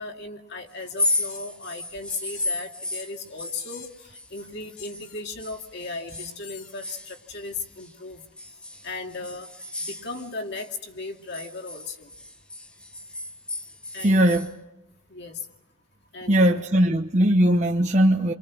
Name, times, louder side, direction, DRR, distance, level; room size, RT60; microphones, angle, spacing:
voice 1, 0.0-8.2 8.8-9.5 9.9-12.1 13.9-14.4 15.1-15.5 16.1-16.7, left 3 dB, 50° left, 3 dB, 2.4 m, -36 dB
sound 1, 0.8-5.1 5.4-7.9 8.4-10.7 11.0-14.5, left 2 dB, 5° left, 0.9 m, -33 dB
sound 2, 1.3-1.4 2.1-2.5 2.9-3.1 3.6-4.1 4.8-5.2 6.1-6.7, left 9 dB, 75° left, 2.2 m, -45 dB
voice 2, 14.0-14.5 16.3-18.3, right 1 dB, 35° right, 3 dB, 0.9 m, -19 dB
30.0 x 24.0 x 6.2 m, 0.91 s
head